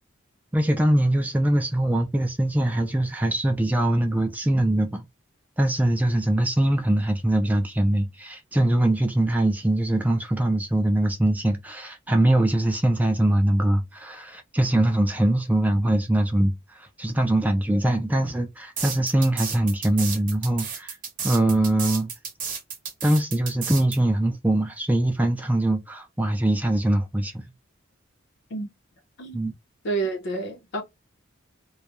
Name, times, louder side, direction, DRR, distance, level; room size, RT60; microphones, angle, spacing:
voice 1, 0.5-5.1 5.6-21.0 21.2-22.1 23.0-27.4 29.3-29.5, right 1 dB, 10° right, 0.3 m, -22 dB
sound 1, 18.8-24.0, right 6 dB, 45° right, 0.8 m, -32 dB
voice 2, 29.2-29.5 29.8-30.8, right 3 dB, 60° left, 0.6 m, -29 dB
2.3 x 2.0 x 2.8 m
head